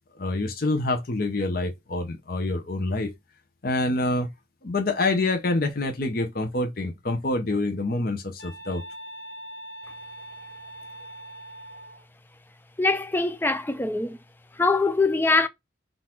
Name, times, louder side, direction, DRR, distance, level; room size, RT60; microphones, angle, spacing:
voice 1, 0.2-3.1 3.6-4.3 4.6-8.8, left 2 dB, 50° left, 0.7 m, -26 dB
sound 1, 8.4-12.0, right 1 dB, 75° left, 1.3 m, -42 dB
voice 2, 12.8-14.2 14.6-15.5, left 3 dB, 10° left, 0.3 m, -23 dB
3.8 x 2.5 x 4.4 m
head